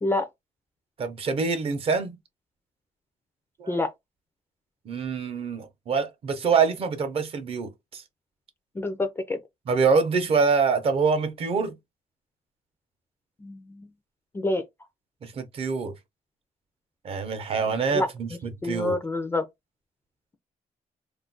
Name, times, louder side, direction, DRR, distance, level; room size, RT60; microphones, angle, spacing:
voice 1, 1.0-2.2 3.6-3.8 4.9-8.0 9.7-11.8 15.2-15.9 17.0-19.0, right 5 dB, 45° right, 0.6 m, -25 dB
voice 2, 8.7-9.4 13.4-13.9 14.3-14.6 17.9-18.1 18.6-19.5, left 2 dB, 15° left, 0.4 m, -27 dB
2.4 x 2.2 x 3.7 m
cardioid pair, 175°, 14 cm